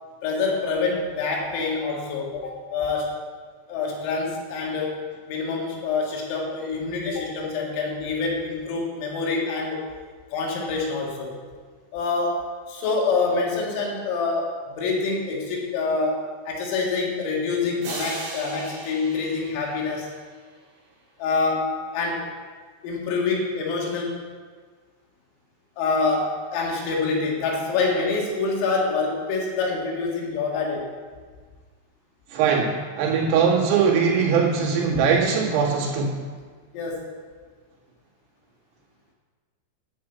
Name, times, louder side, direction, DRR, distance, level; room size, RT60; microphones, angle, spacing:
voice 1, 0.2-3.2 3.7-5.0 5.3-9.9 10.3-11.4 11.9-20.1 21.2-22.3 22.8-24.2 25.8-30.9 36.7-37.1, left 4 dB, 80° left, -1 dB, 4.6 m, -26 dB
sound 1, 17.8-20.5, right 2 dB, 50° right, 3.4 m, -37 dB
voice 2, 32.3-36.3, right 6 dB, 80° right, -4 dB, 4.7 m, -21 dB
10.5 x 7.5 x 8.0 m, 1.5 s
omnidirectional pair, 5.9 m